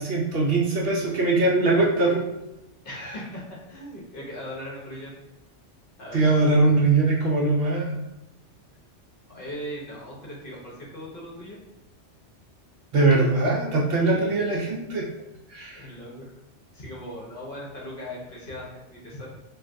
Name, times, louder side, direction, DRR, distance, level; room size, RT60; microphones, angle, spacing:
voice 1, 0.0-2.3 6.1-8.0 12.9-15.1 15.5-15.9, right 3 dB, 60° right, -3 dB, 0.8 m, -21 dB
voice 2, 2.8-5.1 6.0-6.2 9.3-11.6 14.0-14.4 15.7-16.3 16.7-19.3, equal, 50° left, -4 dB, 0.9 m, -39 dB
3.2 x 2.5 x 2.5 m, 0.91 s
omnidirectional pair, 1.2 m